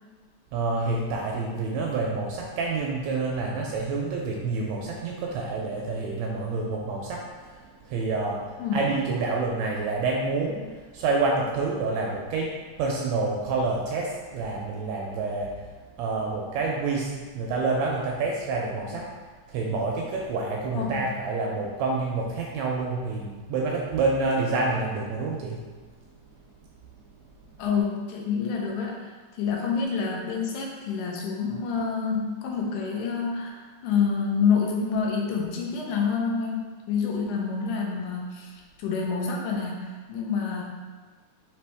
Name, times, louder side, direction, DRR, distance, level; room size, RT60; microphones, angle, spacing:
voice 1, 0.5-15.7 16.0-19.1 19.5-25.6, right 3 dB, 80° right, -1 dB, 1.6 m, -28 dB
voice 2, 20.7-21.2 27.6-29.1 29.4-40.6, left 5 dB, 80° left, -1 dB, 2.1 m, -28 dB
5.0 x 2.9 x 3.4 m, 1.4 s
omnidirectional pair, 3.5 m